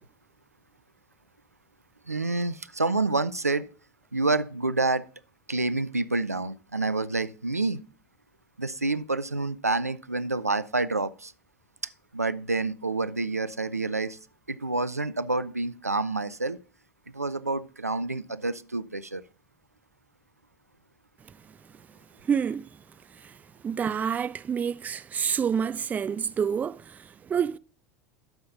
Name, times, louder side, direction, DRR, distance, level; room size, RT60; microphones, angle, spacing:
voice 1, 2.1-3.7 4.1-5.1 5.5-7.8 8.6-11.3 12.1-14.2 14.5-16.6 17.1-19.2, right 3 dB, 85° right, 0.4 m, -28 dB
voice 2, 22.2-22.6 23.1-23.4 23.6-27.6, right 7 dB, 20° right, 0.4 m, -28 dB
12.5 x 5.7 x 3.9 m
figure-of-eight pair, 75°, 8 cm